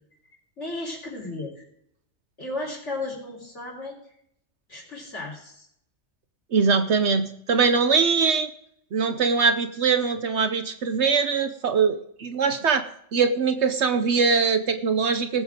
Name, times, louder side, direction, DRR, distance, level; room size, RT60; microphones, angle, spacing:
voice 1, 0.6-1.6 2.4-4.0 4.7-5.7, left 2 dB, 65° left, 0 dB, 4.2 m, -34 dB
voice 2, 6.5-8.5 8.9-12.8 13.1-15.4, right 5 dB, 65° right, 9 dB, 1.1 m, -22 dB
18.5 x 8.4 x 3.7 m, 0.72 s
omnidirectional pair, 1.3 m